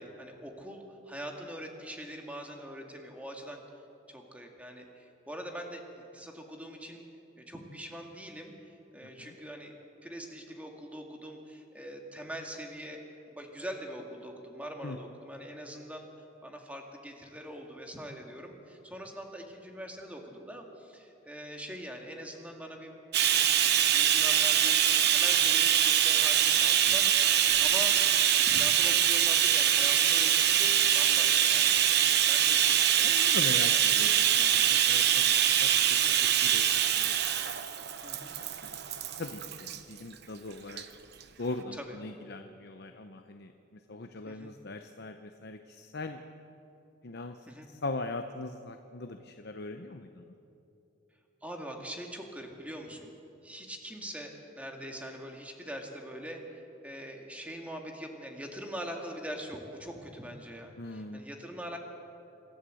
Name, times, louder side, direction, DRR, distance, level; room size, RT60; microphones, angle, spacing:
voice 1, 0.0-3.6 4.1-5.9 6.1-7.0 7.4-9.7 10.0-13.0 13.3-16.1 16.4-23.0 23.9-28.0 28.4-33.8 34.2-34.5 38.0-38.4 41.7-42.0 44.2-44.5 47.5-47.7 51.4-53.1 53.4-61.8, equal, 5° right, 2 dB, 2.2 m, -43 dB
Bathtub (filling or washing), 23.1-39.8 40.7-40.8 41.2-41.3, right 9 dB, 60° right, 1.0 m, -24 dB
voice 2, 33.0-36.7 37.0-37.1 38.4-38.5 39.2-40.8 41.4-43.5 43.9-46.2 47.0-47.4 47.7-50.3 60.8-61.2, left 2 dB, 60° left, 7 dB, 0.8 m, -40 dB
26.5 x 13.0 x 7.8 m, 2.9 s
head